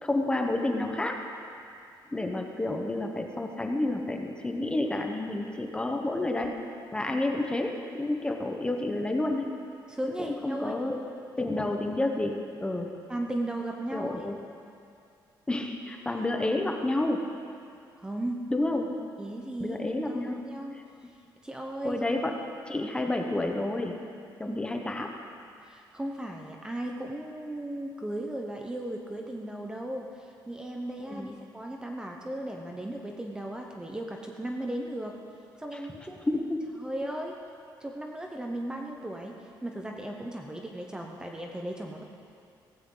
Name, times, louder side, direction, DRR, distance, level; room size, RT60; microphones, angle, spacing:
voice 1, 0.0-1.2 2.1-6.5 6.9-9.5 10.2-11.0 11.4-12.9 13.9-14.4 15.5-17.3 18.5-19.0 19.6-20.4 21.8-22.4 22.7-24.0 24.4-25.1 31.1-31.3 36.3-36.7, left 2 dB, 10° left, 3 dB, 1.1 m, -30 dB
voice 2, 9.9-10.7 13.1-14.3 16.1-16.5 18.0-18.4 19.2-20.8 21.4-22.0 24.5-24.6 25.6-35.1 35.6-36.2 36.8-37.3 37.8-42.0, right 1 dB, 10° right, 1 dB, 0.9 m, -36 dB
17.0 x 15.5 x 4.0 m, 2.4 s
cardioid pair, 155°, 8 cm